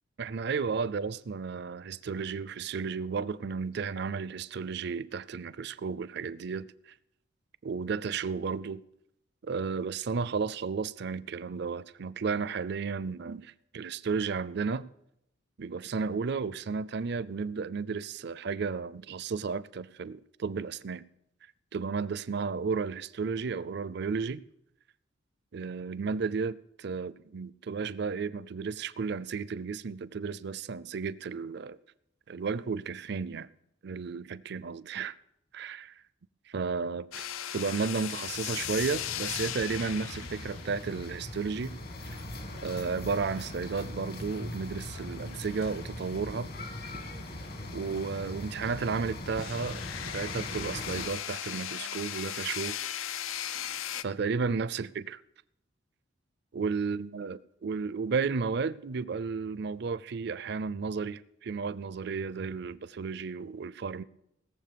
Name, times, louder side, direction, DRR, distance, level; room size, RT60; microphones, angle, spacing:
voice 1, 0.2-6.7 7.6-8.8 9.4-14.9 15.6-21.0 21.7-24.4 25.5-31.8 32.3-33.5 33.8-35.1 35.5-35.9 36.5-41.8 42.6-46.5 47.7-49.8 50.1-52.8 54.0-55.2 56.5-64.0, right 5 dB, 55° right, 0.5 m, -33 dB
sound 1, 37.1-43.7 44.3-44.5 44.7-48.3 48.6-48.7 49.4-54.0, left 11 dB, 85° left, 0.5 m, -39 dB
sound 2, 38.3-51.1, left 1 dB, 50° left, 1.6 m, -41 dB
18.0 x 7.2 x 6.8 m
head